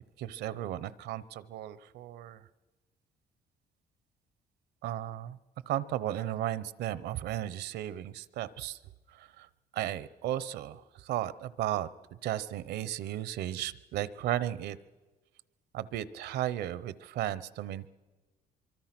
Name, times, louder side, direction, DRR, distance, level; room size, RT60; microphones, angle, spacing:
voice 1, 0.2-2.4 4.8-5.4 5.7-8.8 9.1-9.5 9.7-11.9 12.2-14.8 15.7-17.9, right 12 dB, 75° right, 17 dB, 0.9 m, -35 dB
24.5 x 24.0 x 6.0 m, 1.3 s
cardioid pair, 130°, 17 cm